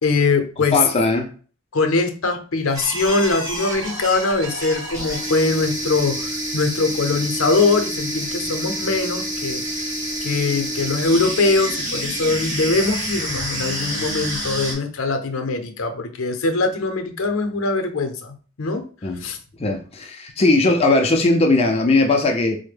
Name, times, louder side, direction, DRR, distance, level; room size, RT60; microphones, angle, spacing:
voice 1, 0.0-0.8 1.7-9.8 10.2-18.8 19.2-19.4, left 3 dB, 80° left, 0.6 m, -22 dB
voice 2, 0.7-1.3 19.0-19.2 19.6-22.6, left 2 dB, 30° left, 0.4 m, -18 dB
sound 1, 2.7-14.7, right 1 dB, 15° right, 1.2 m, -28 dB
4.2 x 2.1 x 3.2 m
head